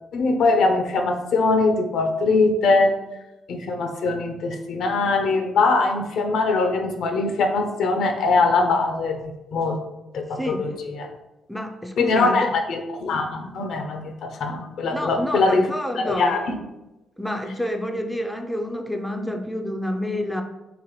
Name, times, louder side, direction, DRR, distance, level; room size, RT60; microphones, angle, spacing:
voice 1, 0.1-2.9 3.5-9.8 10.1-11.1 12.0-15.7 16.0-16.6, left 3 dB, 70° left, 5 dB, 0.5 m, -22 dB
voice 2, 10.3-10.7 11.5-12.5 14.9-16.4 17.2-20.4, left 1 dB, 5° left, 5 dB, 0.3 m, -28 dB
4.0 x 2.6 x 2.9 m, 0.98 s
cardioid pair, 90°, 0 cm